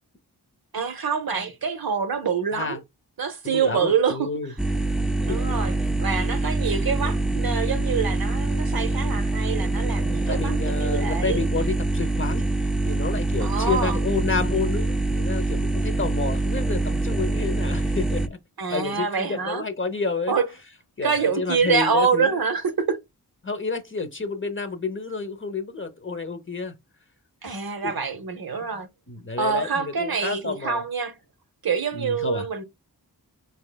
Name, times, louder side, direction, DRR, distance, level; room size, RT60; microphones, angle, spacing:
voice 1, 0.7-2.8 3.2-4.3 5.2-11.5 13.4-14.0 18.6-19.7 20.3-20.5 21.0-23.0 27.4-28.9 29.4-31.2 31.6-32.6, right 6 dB, 60° right, 0.8 m, -26 dB
voice 2, 3.4-4.5 5.3-5.4 10.3-18.4 18.7-20.3 21.0-22.4 23.4-26.7 27.4-27.5 27.8-27.9 28.6-28.7 29.1-30.8 31.9-32.5, left 4 dB, 30° left, 0.8 m, -30 dB
sound 1, 4.6-18.3, right 2 dB, ahead, 0.3 m, -25 dB
4.2 x 3.2 x 2.2 m
cardioid pair, 45°, 40 cm